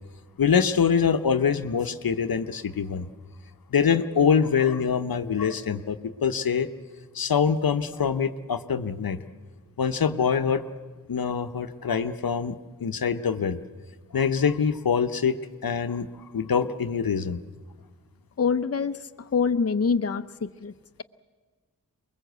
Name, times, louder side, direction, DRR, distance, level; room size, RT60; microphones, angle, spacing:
voice 1, 0.4-3.1 3.7-6.7 7.1-9.2 9.8-10.6 11.1-13.6 14.1-15.4 15.6-16.1 16.3-17.4, left 6 dB, 85° left, 10 dB, 0.8 m, -24 dB
voice 2, 18.4-20.7, left 5 dB, 45° left, 10 dB, 0.7 m, -25 dB
23.5 x 21.0 x 8.1 m, 1.4 s
cardioid pair, 40°, 35 cm